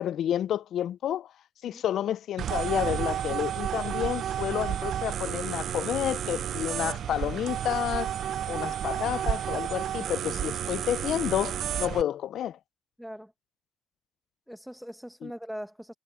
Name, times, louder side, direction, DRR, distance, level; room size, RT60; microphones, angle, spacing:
voice 1, 0.0-1.3 1.6-8.1 8.5-12.6 15.2-15.3, left 11 dB, 75° left, 0.3 m, -30 dB
sound 1, 2.4-12.0, right 10 dB, 65° right, 0.4 m, -31 dB
voice 2, 13.0-13.3 14.5-15.9, equal, ahead, 1.0 m, -41 dB
cardioid pair, 90°, 0 cm